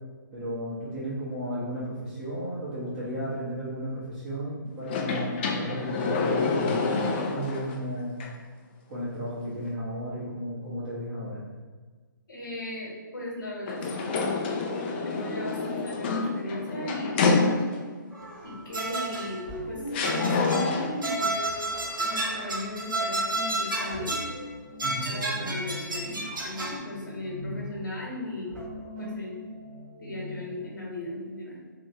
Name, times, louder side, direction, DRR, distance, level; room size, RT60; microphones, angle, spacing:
voice 1, 0.3-8.2 8.9-11.4 24.8-25.1, equal, 35° right, -9 dB, 1.2 m, -34 dB
sound 1, 4.8-7.8 8.2-8.3 13.7-18.0 19.1-19.2 19.9-21.1, left 4 dB, 30° left, 0.4 m, -27 dB
voice 2, 12.3-14.1 14.8-17.2 18.4-24.1 25.0-28.5 29.0-29.4 30.0-31.6, left 1 dB, 70° left, -4 dB, 1.2 m, -37 dB
sound 2, 18.1-30.7, left 1 dB, 10° right, 1.1 m, -42 dB
sound 3, 18.7-19.4 20.0-20.7 21.0-24.3 24.8-26.8, right 2 dB, 75° right, 0.8 m, -31 dB
3.2 x 2.8 x 2.8 m, 1.4 s
figure-of-eight pair, 135°, 11 cm